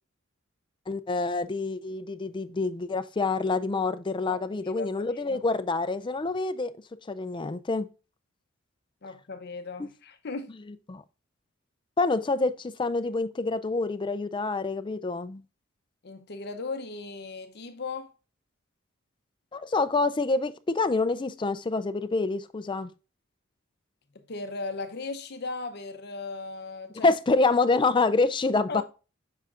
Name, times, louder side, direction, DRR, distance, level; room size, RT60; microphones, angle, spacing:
voice 1, 0.9-6.7 7.1-7.9 9.8-9.9 10.9-11.0 12.0-15.4 19.5-22.9 27.0-28.8, left 3 dB, 25° left, 0.4 m, -27 dB
voice 2, 4.3-5.4 9.0-10.5 16.0-18.1 24.3-27.1 28.7-28.8, left 3 dB, 55° left, 0.7 m, -37 dB
7.4 x 5.7 x 2.4 m
head